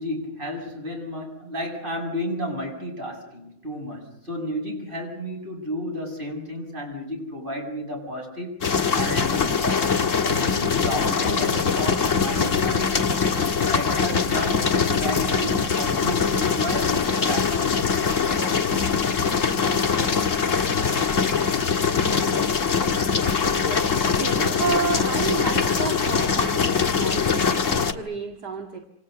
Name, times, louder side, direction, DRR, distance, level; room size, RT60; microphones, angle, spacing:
voice 1, 0.0-13.1 13.7-18.0, equal, 25° right, 1 dB, 8.1 m, -32 dB
sound 1, 8.6-27.9, left 6 dB, 40° left, 1.9 m, -22 dB
voice 2, 23.5-28.8, right 6 dB, 55° right, 3 dB, 2.6 m, -31 dB
28.5 x 27.5 x 6.8 m, 0.78 s
omnidirectional pair, 2.1 m